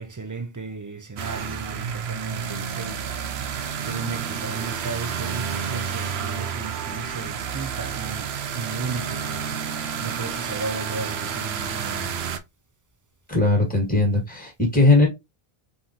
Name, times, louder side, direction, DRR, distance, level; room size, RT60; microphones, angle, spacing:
voice 1, 0.0-12.3, right 4 dB, 30° right, 0.4 m, -35 dB
sound 1, 1.2-12.4, right 7 dB, 85° right, 0.9 m, -30 dB
voice 2, 13.3-15.1, left 2 dB, 10° left, 1.8 m, -19 dB
3.9 x 3.5 x 2.8 m
omnidirectional pair, 1.0 m